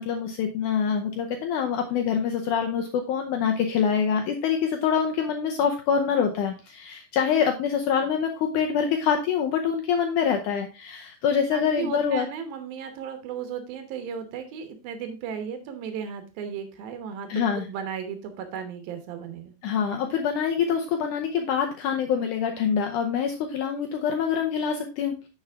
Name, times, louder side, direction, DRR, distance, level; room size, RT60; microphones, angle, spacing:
voice 1, 0.0-12.3 17.3-17.7 19.6-25.1, left 7 dB, 75° left, 4 dB, 2.0 m, -25 dB
voice 2, 11.5-19.5, right 7 dB, 85° right, 7 dB, 2.9 m, -35 dB
10.0 x 5.7 x 3.4 m, 0.30 s
omnidirectional pair, 4.1 m